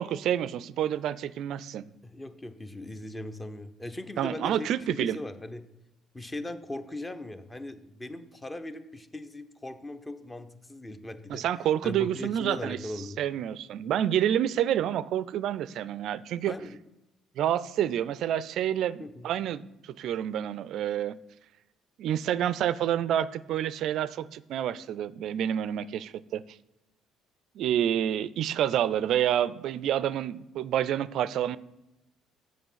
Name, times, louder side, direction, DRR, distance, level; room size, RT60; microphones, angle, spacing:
voice 1, 0.0-1.9 4.2-5.2 11.3-12.8 13.2-16.5 17.4-19.6 20.0-21.2 22.0-26.4 27.6-31.6, right 10 dB, 65° right, 0.3 m, -28 dB
voice 2, 2.0-5.6 6.1-11.4 11.8-13.2 16.5-16.8 19.0-19.3, left 1 dB, 20° left, 0.8 m, -39 dB
7.0 x 6.1 x 5.6 m
hypercardioid pair, 55°, 0 cm